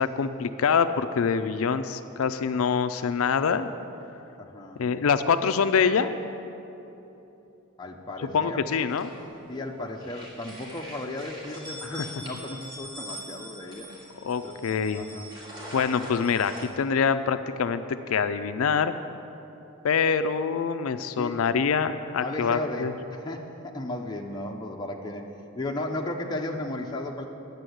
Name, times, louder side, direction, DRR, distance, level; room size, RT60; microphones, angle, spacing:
voice 1, 0.0-3.7 4.8-6.1 8.3-9.1 11.9-12.0 14.2-15.0 15.7-17.8 18.1-18.9 19.8-22.9, left 6 dB, 75° left, 10 dB, 0.4 m, -25 dB
voice 2, 4.4-4.8 7.8-8.7 9.5-14.0 14.4-14.5 14.9-15.3 21.2-21.4 22.2-25.3 25.6-27.3, left 1 dB, 20° left, 1 dB, 0.6 m, -35 dB
sound 1, 8.9-9.7 10.0-16.7, equal, 20° right, 2.0 m, -43 dB
9.9 x 6.8 x 7.8 m, 3.0 s
head